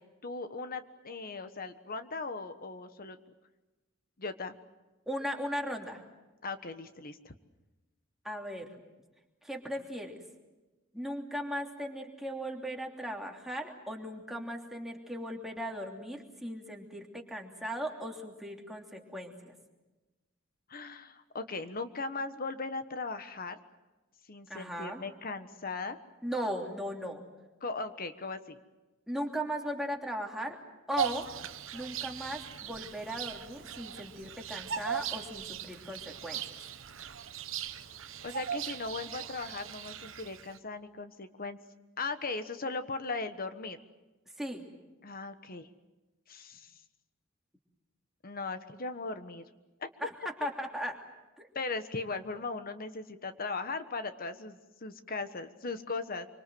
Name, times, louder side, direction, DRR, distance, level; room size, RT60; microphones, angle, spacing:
voice 1, 0.2-3.2 4.2-4.5 6.4-7.3 20.7-23.6 24.3-26.0 27.6-28.6 38.2-41.6 42.0-43.8 45.0-45.7 46.3-46.7 48.2-49.4 49.8-49.9 51.5-56.3, left 3 dB, 45° left, 10 dB, 1.3 m, -38 dB
voice 2, 5.1-6.0 8.2-8.7 9.4-10.2 10.9-19.5 24.5-25.0 26.2-27.2 29.1-30.6 30.9-31.2 31.7-36.4 44.4-44.6 50.0-50.9 51.4-51.5, equal, ahead, 0 dB, 3.1 m, -37 dB
Bird vocalization bird call bird song, 31.0-40.6, right 8 dB, 70° right, 1.2 m, -39 dB
26.0 x 25.0 x 7.8 m, 1.1 s
head